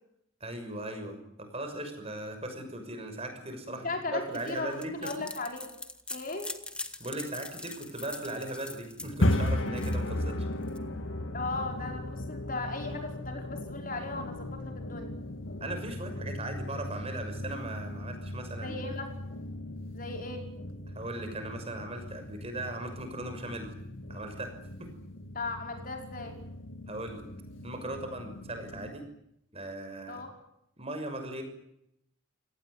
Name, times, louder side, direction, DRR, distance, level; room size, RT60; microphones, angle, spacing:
voice 1, 0.4-5.1 7.0-10.5 15.6-19.0 20.9-23.7 24.1-24.5 24.8-24.9 26.9-27.2 27.6-29.1 29.5-30.2 30.8-31.4, right 1 dB, 30° right, 6 dB, 6.1 m, -38 dB
voice 2, 3.7-5.7 6.1-6.5 11.3-15.1 18.6-19.1 19.9-20.5 25.3-26.4 30.1-30.3, left 3 dB, 40° left, 3 dB, 5.3 m, -37 dB
sound 1, 4.3-10.8, left 2 dB, 5° left, 1.5 m, -43 dB
sound 2, 9.0-28.9, left 1 dB, 65° left, 2.2 m, -36 dB
28.5 x 18.5 x 9.9 m, 0.79 s
head